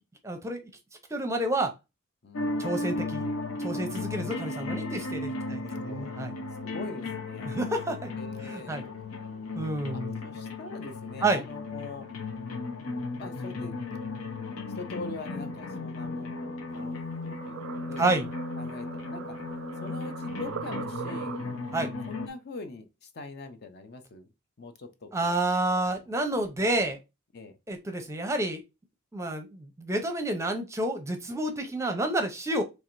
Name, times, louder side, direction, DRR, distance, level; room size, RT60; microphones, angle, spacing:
voice 1, 0.2-0.6 1.1-1.7 2.6-3.3 3.6-6.3 7.4-8.1 8.4-8.8 9.6-10.2 11.2-11.4 18.0-18.3 21.7-21.9 25.1-27.0 27.7-28.6 29.1-32.6, right 2 dB, 15° right, 0.6 m, -29 dB
voice 2, 2.2-2.6 5.4-6.2 6.6-7.6 8.2-8.9 9.9-12.1 13.2-13.7 14.8-18.1 18.6-19.4 19.8-21.5 22.1-24.3 24.6-25.4 25.9-26.0 27.3-27.6 32.5-32.6, left 3 dB, 50° left, 0.6 m, -42 dB
sound 1, 2.3-22.3, left 3 dB, 80° left, 0.8 m, -35 dB
sound 2, 16.7-21.8, right 7 dB, 65° right, 0.3 m, -41 dB
4.7 x 3.2 x 2.5 m
head